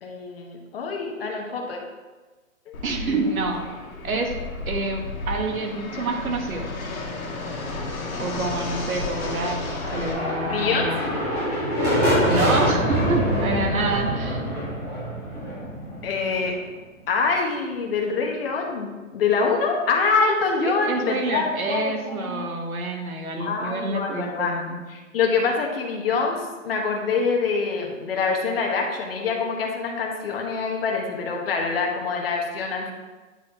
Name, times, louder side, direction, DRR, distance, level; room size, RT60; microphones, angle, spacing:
voice 1, 0.0-1.8 2.7-2.8 10.4-10.9 16.0-16.5 17.1-22.5 23.4-24.5 24.9-32.9, left 4 dB, 45° left, 0 dB, 1.1 m, -25 dB
Fixed-wing aircraft airplane, 2.7-10.1, left 3 dB, 85° left, 1.4 m, -33 dB
voice 2, 2.8-3.6 4.0-4.3 4.7-6.7 8.2-11.2 12.3-14.4 20.6-24.8, right 2 dB, 85° right, 3 dB, 1.3 m, -27 dB
sound 1, 8.9-16.6, equal, 15° right, 1.4 m, -25 dB
8.4 x 3.0 x 4.3 m, 1.3 s
hypercardioid pair, 165°, 41 cm